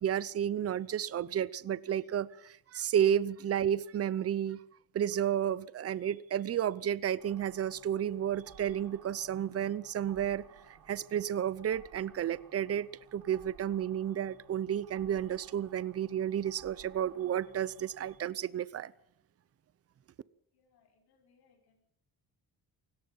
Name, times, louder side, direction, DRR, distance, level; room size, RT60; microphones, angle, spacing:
voice 1, 0.0-4.6 4.9-18.9, right 10 dB, 40° right, 0.7 m, -32 dB
sound 1, 7.2-18.2, right 7 dB, 65° right, 4.0 m, -58 dB
voice 2, 20.5-21.9, left 5 dB, 90° left, 6.3 m, -70 dB
28.5 x 17.5 x 5.6 m
cardioid pair, 155°, 38 cm